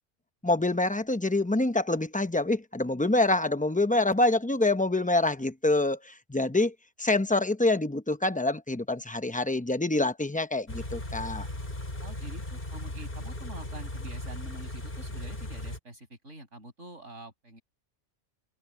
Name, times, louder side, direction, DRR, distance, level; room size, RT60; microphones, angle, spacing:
voice 1, 0.4-6.7 7.0-11.5, left 2 dB, 10° left, 0.7 m, -26 dB
Car / Idling, 10.7-15.8, left 1 dB, 45° left, 3.8 m, -37 dB
voice 2, 12.0-17.6, right 1 dB, 85° right, 6.9 m, -46 dB
omnidirectional pair, 1.2 m